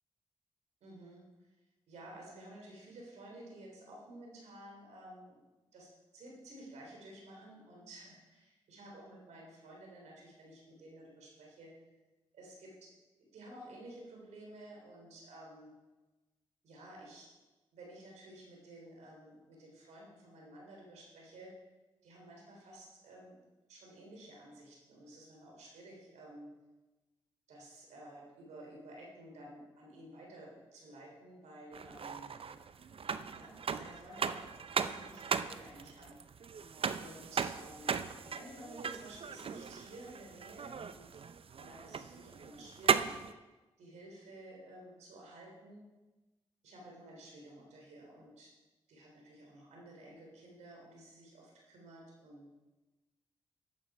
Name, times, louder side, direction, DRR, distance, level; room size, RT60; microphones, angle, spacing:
voice 1, 0.8-1.5 1.9-5.4 5.7-11.9 12.3-12.9 13.2-15.7 16.6-17.3 17.7-21.6 22.0-23.4 23.7-26.5 27.5-32.3 33.3-36.2 36.9-41.1 41.5-43.2 43.8-45.9 46.6-48.5 48.9-52.6, right 1 dB, 85° right, -1 dB, 3.2 m, -53 dB
sound 1, 31.7-43.3, right 6 dB, 55° right, 0.6 m, -37 dB
11.5 x 8.2 x 4.7 m, 1.1 s
supercardioid pair, 40°, 12 cm